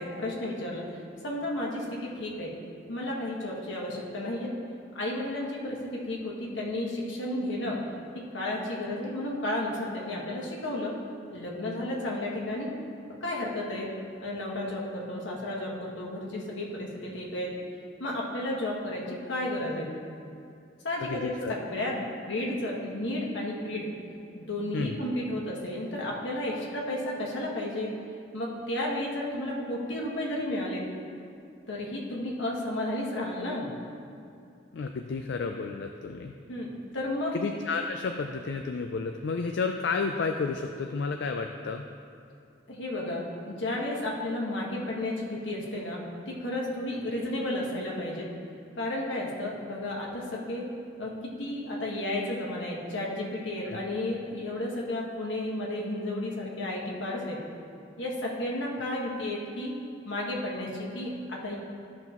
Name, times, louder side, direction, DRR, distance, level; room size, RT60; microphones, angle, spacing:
voice 1, 0.0-2.5 2.9-4.5 4.9-7.8 8.3-10.9 11.3-12.7 13.2-13.9 14.2-17.5 18.0-19.9 20.8-23.9 24.3-27.9 28.3-30.8 31.7-33.7 36.5-36.7 36.9-37.3 42.7-46.0 46.3-48.2 48.7-50.6 51.0-51.1 51.4-57.4 58.0-59.8 60.0-61.6, left 1 dB, 80° left, -3 dB, 1.6 m, -32 dB
voice 2, 21.0-21.5 24.7-25.0 34.7-36.3 37.3-41.8 53.7-53.8, left 4 dB, 65° left, 4 dB, 0.4 m, -31 dB
13.5 x 5.8 x 3.0 m, 2.5 s
head